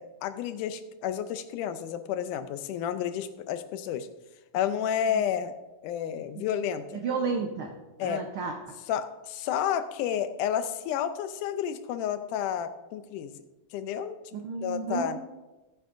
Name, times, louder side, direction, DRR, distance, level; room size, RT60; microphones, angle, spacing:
voice 1, 0.0-4.1 4.5-5.5 5.8-6.9 8.0-8.2 8.9-13.4 13.7-14.2 14.6-15.2, left 9 dB, 90° left, 10 dB, 2.2 m, -31 dB
voice 2, 7.0-7.7 8.0-8.5 14.4-15.1, right 5 dB, 85° right, 3 dB, 1.1 m, -31 dB
15.5 x 9.0 x 2.6 m, 1.1 s
omnidirectional pair, 3.5 m